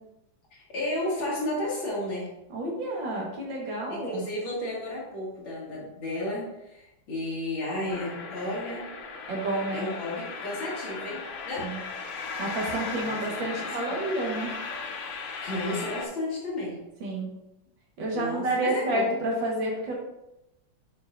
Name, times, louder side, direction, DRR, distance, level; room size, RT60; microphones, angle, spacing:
voice 1, 0.5-2.3 3.9-8.9 9.7-11.7 13.0-14.0 15.4-16.8 18.1-19.1, left 1 dB, 80° left, -7 dB, 2.4 m, -33 dB
voice 2, 2.5-4.3 9.3-9.9 11.6-11.8 12.4-14.5 17.0-17.3 18.0-19.9, right 1 dB, 70° right, -2 dB, 2.1 m, -30 dB
sound 1, 7.9-16.1, left 4 dB, 65° left, 0.7 m, -37 dB
8.4 x 4.7 x 2.5 m, 0.91 s
omnidirectional pair, 2.1 m